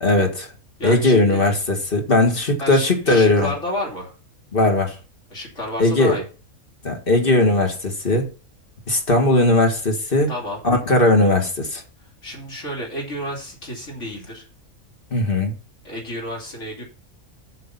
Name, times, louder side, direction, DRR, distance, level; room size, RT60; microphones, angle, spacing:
voice 1, 0.0-0.5 0.8-3.5 4.5-5.0 5.8-6.2 6.8-8.3 8.9-10.3 10.6-11.8 15.1-15.5, left 2 dB, 40° left, 2.0 m, -18 dB
voice 2, 0.8-1.4 2.6-4.1 5.3-6.2 10.3-10.6 12.2-14.5 15.8-16.8, left 1 dB, 55° left, 3.3 m, -31 dB
8.4 x 6.8 x 5.6 m
omnidirectional pair, 1.5 m